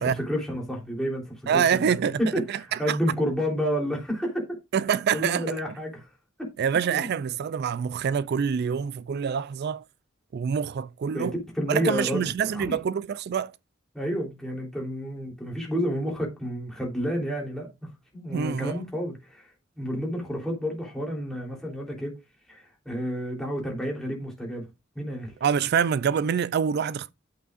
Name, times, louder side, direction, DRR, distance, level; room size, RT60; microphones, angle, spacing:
voice 1, 0.0-4.4 5.1-6.0 6.4-6.5 6.9-7.1 11.1-11.3 11.5-12.2 12.5-12.7 13.9-22.2 22.5-24.7 24.9-25.3, equal, ahead, 3.4 m, -30 dB
voice 2, 1.5-2.2 2.5-3.0 4.7-5.6 6.6-9.8 10.3-11.3 11.7-13.5 18.3-18.7 25.4-27.1, right 7 dB, 55° right, 0.3 m, -26 dB
9.8 x 8.0 x 2.5 m
head